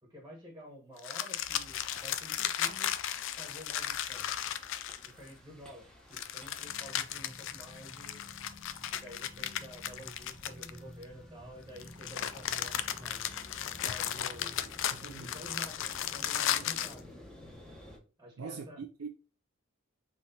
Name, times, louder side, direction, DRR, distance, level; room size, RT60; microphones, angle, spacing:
voice 1, 0.0-2.9 3.4-4.3 5.0-8.2 8.9-13.3 13.8-14.5 14.9-17.1 18.2-18.8, equal, 10° right, 1.2 m, -50 dB
sound 1, 1.0-5.3 6.1-11.0 11.8-17.0, left 10 dB, 60° left, 0.4 m, -35 dB
sound 2, 1.4-18.0, left 1 dB, 5° left, 0.9 m, -54 dB
sound 3, 6.6-14.8, left 1 dB, 35° left, 2.4 m, -53 dB
voice 2, 14.9-15.4 18.4-19.1, right 5 dB, 85° right, 0.5 m, -43 dB
5.6 x 3.0 x 2.7 m
head